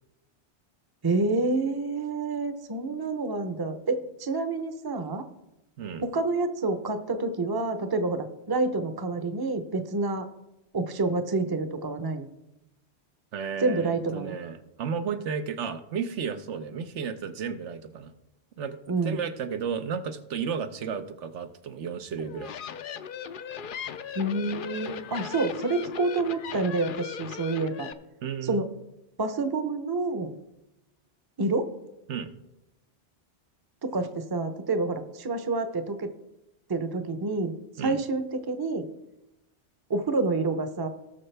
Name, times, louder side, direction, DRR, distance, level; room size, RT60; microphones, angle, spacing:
voice 1, 1.0-5.3 6.0-10.3 10.7-12.3 13.6-14.4 18.9-19.2 24.1-27.9 28.4-28.7 29.2-30.3 31.4-31.7 33.8-36.1 36.7-37.5 37.8-38.9 39.9-40.9, right 3 dB, 25° right, 8 dB, 0.7 m, -28 dB
voice 2, 13.3-18.1 18.6-18.8 19.0-22.5 28.2-28.6 32.1-32.3 37.8-38.0, right 6 dB, 80° right, 9 dB, 1.1 m, -33 dB
sound 1, 22.2-27.9, left 7 dB, 55° left, 0.6 m, -38 dB
18.0 x 6.5 x 3.4 m, 0.93 s
omnidirectional pair, 1.2 m